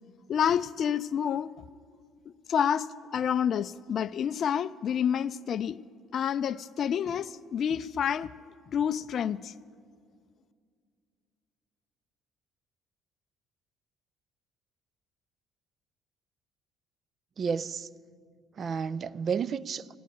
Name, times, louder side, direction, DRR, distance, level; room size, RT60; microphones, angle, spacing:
voice 1, 0.3-1.5 2.5-5.8 6.1-8.3 8.7-9.5, left 8 dB, 55° left, 0.3 m, -28 dB
voice 2, 17.4-17.9 18.6-20.0, right 6 dB, 50° right, 0.4 m, -31 dB
15.0 x 10.5 x 9.3 m
hypercardioid pair, 60°, 0 cm